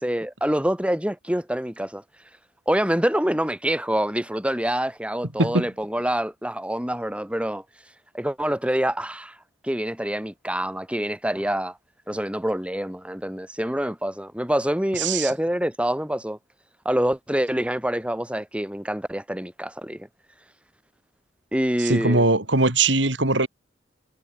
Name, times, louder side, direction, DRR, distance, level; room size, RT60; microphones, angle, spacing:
voice 1, 0.0-2.0 2.7-7.6 8.1-9.4 9.6-11.8 12.1-16.4 16.8-20.1 21.5-22.3, right 1 dB, 5° right, 2.7 m, -26 dB
voice 2, 15.0-15.3 21.8-23.5, right 2 dB, 70° right, 4.6 m, -21 dB
head